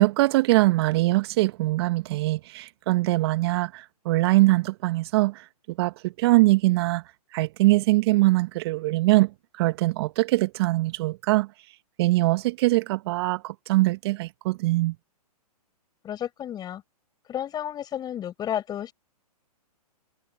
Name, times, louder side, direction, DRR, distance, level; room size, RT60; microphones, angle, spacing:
voice 1, 0.0-5.4 5.8-7.0 7.3-9.3 9.5-11.5 12.0-14.9, right 20 dB, 40° right, 1.0 m, -22 dB
voice 2, 16.0-16.8 17.3-18.9, left 10 dB, 20° left, 6.3 m, -32 dB
hypercardioid pair, 125°, 20 cm